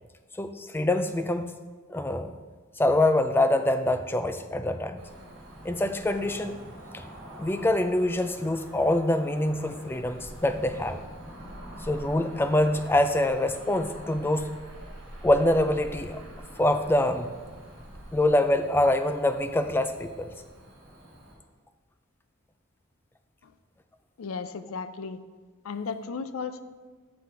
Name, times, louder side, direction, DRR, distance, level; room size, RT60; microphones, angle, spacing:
voice 1, 0.3-1.5 1.9-2.3 2.8-5.0 5.6-6.6 7.4-11.0 11.8-14.5 15.2-16.2 16.6-17.3 18.1-20.3, left 1 dB, 10° left, 8 dB, 0.3 m, -25 dB
Cricket / Motor vehicle (road), 5.0-21.3, right 1 dB, 60° right, 1.9 m, -45 dB
voice 2, 24.2-25.2 25.6-26.6, left 5 dB, 80° left, 11 dB, 0.5 m, -35 dB
7.0 x 5.8 x 4.7 m, 1.4 s
head